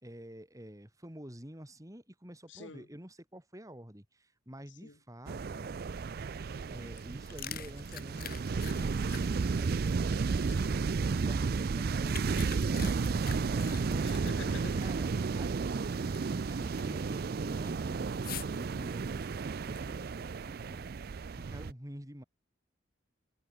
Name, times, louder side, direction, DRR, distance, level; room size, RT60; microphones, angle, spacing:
voice 1, 0.0-5.7 6.7-10.6 11.0-14.2 14.8-18.1 18.5-19.3 19.6-20.9 21.3-22.2, equal, 15° right, 3.7 m, -49 dB
voice 2, 2.5-2.9 4.8-5.0 10.5-10.8 14.0-14.8, left 3 dB, 70° left, 1.5 m, -47 dB
sound 1, 5.3-21.7, right 4 dB, 50° right, 0.4 m, -33 dB
sound 2, 6.9-10.9 11.4-14.9 15.1-15.2 15.8-16.4 16.7-17.1 18.2-18.6 19.2-20.1, left 8 dB, 50° left, 1.6 m, -45 dB
head